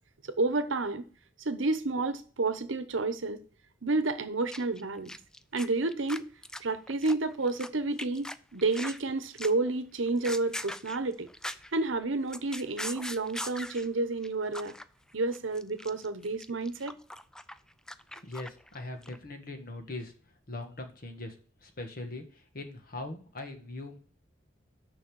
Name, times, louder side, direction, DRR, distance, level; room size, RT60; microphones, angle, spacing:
voice 1, 0.3-1.0 1.4-3.4 3.8-5.1 5.5-6.2 6.6-11.3 11.7-14.7 15.1-17.0, right 3 dB, 70° right, 0.9 m, -30 dB
sound 1, 4.5-4.8 5.1-7.7 8.0-9.0 9.4-9.7 10.1-11.7 12.0-13.9 14.2-14.3 14.5-14.8 15.1-18.8 19.0-19.2, left 1 dB, 5° left, 0.4 m, -40 dB
voice 2, 18.1-20.1 20.5-24.0, left 2 dB, 50° left, 1.6 m, -41 dB
6.5 x 5.4 x 6.9 m
head